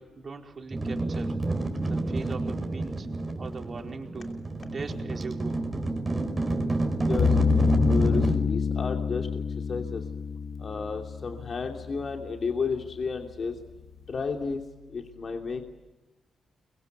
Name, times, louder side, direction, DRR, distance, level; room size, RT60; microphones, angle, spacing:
voice 1, 0.0-1.4 1.8-3.1 3.4-4.3 4.7-5.6, right 4 dB, 40° right, 2 dB, 4.7 m, -40 dB
sound 1, 0.7-8.4, right 2 dB, 20° right, 4.5 m, -29 dB
sound 2, 7.2-12.3, left 6 dB, 65° left, 1.7 m, -27 dB
voice 2, 7.9-9.4 9.7-10.0 10.6-13.5 14.1-14.6 14.9-15.7, left 5 dB, 45° left, 3 dB, 2.9 m, -32 dB
30.0 x 23.5 x 8.3 m, 1.0 s
cardioid pair, 115°, 0 cm